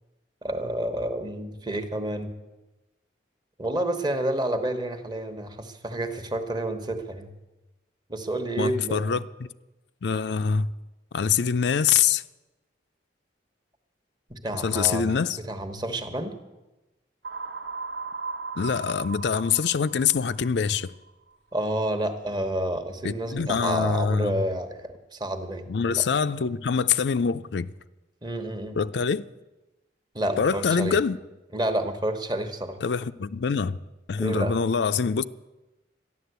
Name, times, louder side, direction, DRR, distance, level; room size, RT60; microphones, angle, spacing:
voice 1, 0.4-2.3 3.6-7.3 8.1-9.2 14.3-16.4 21.5-26.0 28.2-28.8 30.1-31.0 31.5-32.8 34.2-34.6, right 1 dB, 25° right, 1.1 m, -29 dB
voice 2, 8.6-9.2 10.0-10.7 11.1-12.2 14.6-15.4 18.6-20.9 23.0-24.4 25.7-27.7 28.8-29.3 30.4-31.2 32.8-33.8 34.1-35.2, left 6 dB, 70° left, 0.4 m, -24 dB
sound 1, 17.2-21.1, right 4 dB, 80° right, 1.4 m, -37 dB
13.0 x 11.0 x 8.1 m
head